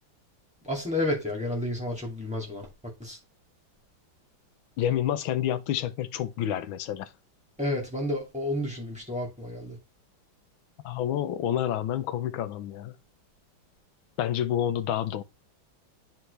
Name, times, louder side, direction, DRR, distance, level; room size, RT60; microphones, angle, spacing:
voice 1, 0.6-2.7 3.0-3.2 7.6-9.8, left 1 dB, 5° right, 2.3 m, -31 dB
voice 2, 4.8-7.1 10.8-12.9 14.2-15.2, left 11 dB, 80° left, 1.5 m, -28 dB
9.5 x 4.5 x 3.3 m
omnidirectional pair, 2.2 m